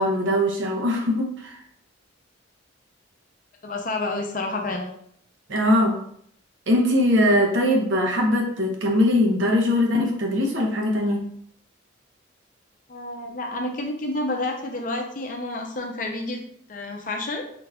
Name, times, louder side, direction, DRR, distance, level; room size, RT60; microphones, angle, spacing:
voice 1, 0.0-1.6 5.5-6.0 6.7-11.3, left 1 dB, 75° right, 0 dB, 0.8 m, -21 dB
voice 2, 3.6-4.9 12.9-16.4 16.7-17.4, left 2 dB, 40° left, 2 dB, 0.6 m, -29 dB
3.9 x 2.4 x 3.3 m, 0.66 s
head